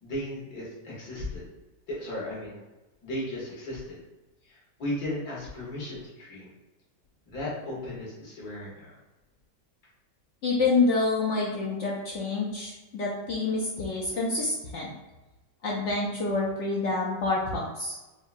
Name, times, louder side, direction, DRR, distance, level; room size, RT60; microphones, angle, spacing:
voice 1, 0.0-1.4 1.9-2.6 3.0-4.0 4.5-6.5 7.3-8.9, left 1 dB, 65° left, -6 dB, 1.7 m, -35 dB
voice 2, 10.4-14.9 15.6-18.0, left 3 dB, 90° left, -4 dB, 0.6 m, -27 dB
4.5 x 2.2 x 2.5 m, 1.1 s
omnidirectional pair, 1.9 m